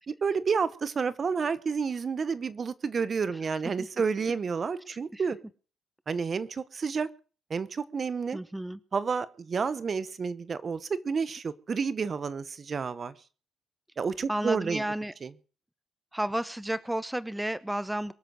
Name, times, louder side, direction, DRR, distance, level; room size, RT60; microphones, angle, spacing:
voice 1, 0.1-5.4 6.1-7.1 7.5-8.4 8.9-13.1 14.0-14.8 15.2-15.3, right 5 dB, 40° right, 17 dB, 0.9 m, -30 dB
voice 2, 8.3-8.8 14.3-15.1 16.1-18.1, right 1 dB, 5° right, 17 dB, 0.8 m, -32 dB
22.5 x 7.6 x 6.5 m, 0.40 s
cardioid pair, 90°, 0 cm